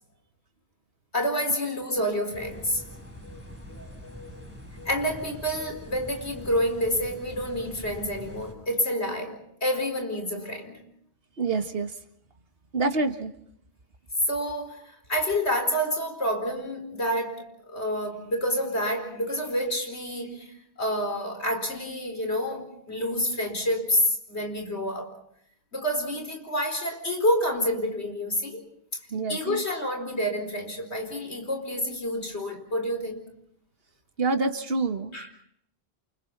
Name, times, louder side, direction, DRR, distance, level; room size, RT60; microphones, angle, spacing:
voice 1, 1.1-2.8 4.8-10.8 14.3-25.1 25.7-28.6 29.3-33.2 35.1-35.4, equal, 80° left, 4.7 m, -28 dB
sound 1, 2.3-8.5, left 1 dB, 10° left, 6.9 m, -43 dB
voice 2, 11.4-11.9 12.7-13.3 29.1-29.6 34.2-35.1, right 3 dB, 60° right, 1.8 m, -27 dB
28.5 x 28.5 x 4.0 m
omnidirectional pair, 1.1 m